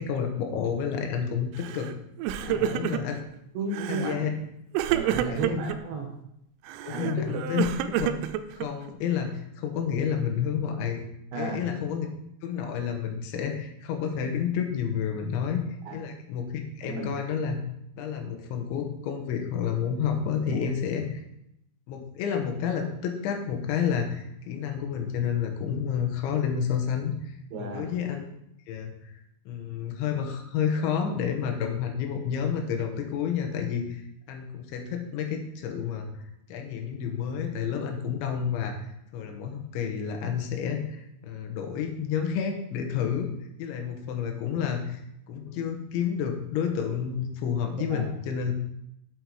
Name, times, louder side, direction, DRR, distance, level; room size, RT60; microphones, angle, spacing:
voice 1, 0.0-1.9 2.5-3.2 3.9-4.3 5.3-5.6 6.9-7.6 8.0-8.1 8.5-11.0 11.4-12.1 12.4-15.7 15.9-17.6 18.0-21.2 21.9-28.3 28.7-28.9 29.5-34.0 34.3-36.2 36.5-38.8 39.1-43.3 43.6-45.0 45.3-48.5, left 7 dB, 75° left, 4 dB, 3.1 m, -30 dB
Crying sobbing, 1.6-1.9 2.2-3.2 3.7-4.2 4.7-5.8 6.7-8.9, right 11 dB, 85° right, 3.3 m, -29 dB
voice 2, 2.4-2.7 3.6-4.3 4.9-6.1 6.9-7.1 11.3-11.6 15.9-16.0 16.8-17.1 20.5-20.6 27.5-27.9 47.9-48.1, right 3 dB, 65° right, 2 dB, 3.3 m, -33 dB
8.3 x 7.8 x 4.7 m, 0.79 s
omnidirectional pair, 6.0 m